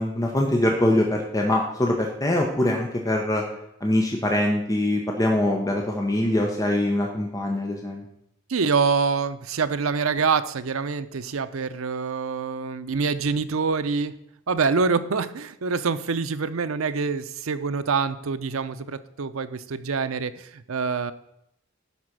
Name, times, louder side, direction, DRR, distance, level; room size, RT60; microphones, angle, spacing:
voice 1, 0.0-3.4 3.8-8.0, left 1 dB, 15° left, 1 dB, 0.9 m, -23 dB
voice 2, 8.5-14.1 14.5-21.1, right 5 dB, 85° right, 11 dB, 0.6 m, -25 dB
11.5 x 4.2 x 6.0 m, 0.78 s
head